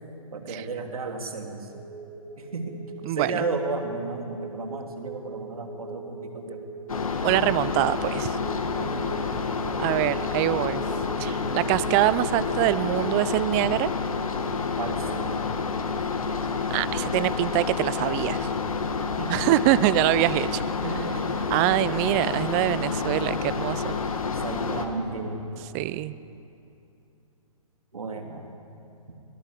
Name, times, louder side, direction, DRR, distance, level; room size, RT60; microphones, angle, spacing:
voice 1, 0.3-1.7 2.4-6.6 8.7-9.8 14.8-15.6 19.2-19.4 20.8-21.5 24.3-25.5 27.9-28.5, right 3 dB, 80° right, 4 dB, 3.3 m, -34 dB
sound 1, 1.6-13.6, right 2 dB, 45° right, 7.6 m, -41 dB
voice 2, 3.0-3.4 7.2-8.4 9.8-10.8 11.2-13.9 16.7-18.5 19.3-20.6 21.5-24.0 25.7-26.1, right 17 dB, 25° right, 17 dB, 0.5 m, -24 dB
sound 2, 6.9-24.9, left 5 dB, 75° left, 2.2 m, -29 dB
23.5 x 18.0 x 8.3 m, 2.8 s
hypercardioid pair, 135°, 18 cm